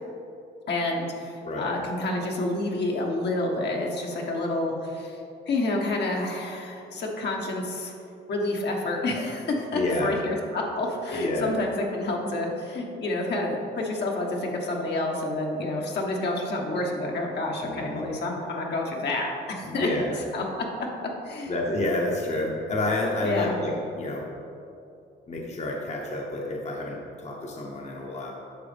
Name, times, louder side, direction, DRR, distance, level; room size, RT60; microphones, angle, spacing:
voice 1, 0.7-5.2 5.5-7.9 8.3-19.9 20.3-20.6 21.2-21.5 23.2-23.6, left 2 dB, 60° left, -1 dB, 1.3 m, -29 dB
voice 2, 9.7-10.2 11.1-11.5 17.6-18.0 19.6-20.2 21.5-24.3 25.3-28.3, left 2 dB, 35° left, -1 dB, 1.0 m, -29 dB
9.4 x 6.2 x 3.4 m, 2.6 s
cardioid pair, 90°, 20 cm